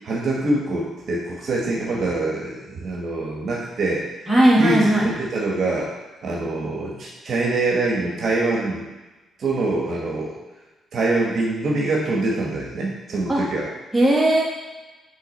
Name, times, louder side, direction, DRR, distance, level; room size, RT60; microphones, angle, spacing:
voice 1, 0.0-5.9 6.2-8.9 9.4-10.4 10.9-13.7, right 2 dB, 55° right, -2 dB, 1.2 m, -24 dB
voice 2, 4.3-5.1 13.3-13.4 13.9-14.4, right 1 dB, 5° right, -6 dB, 2.1 m, -17 dB
7.2 x 3.6 x 4.1 m, 1.2 s
cardioid pair, 90°, 0 cm